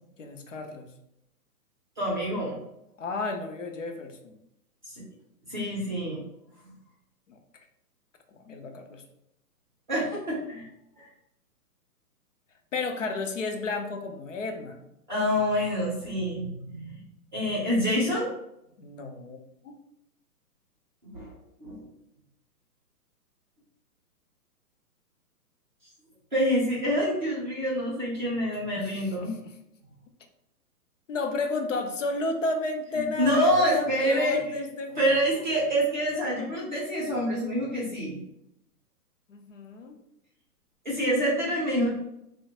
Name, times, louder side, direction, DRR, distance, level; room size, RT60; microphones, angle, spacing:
voice 1, 0.2-0.9 3.0-4.4 7.3-7.4 8.5-9.0 12.7-14.9 18.8-19.8 28.8-29.5 31.1-35.2 39.3-40.0, left 3 dB, 55° left, 5 dB, 0.5 m, -33 dB
voice 2, 2.0-2.6 4.9-5.0 5.5-6.2 6.6-6.7 9.9-10.7 11.0-11.1 15.1-17.0 17.3-18.3 21.0-21.3 21.6-21.8 26.3-29.3 32.9-34.6 35.0-38.2 40.8-41.9, equal, 30° right, -5 dB, 0.5 m, -27 dB
2.9 x 2.1 x 2.8 m, 0.82 s
hypercardioid pair, 170°, 47 cm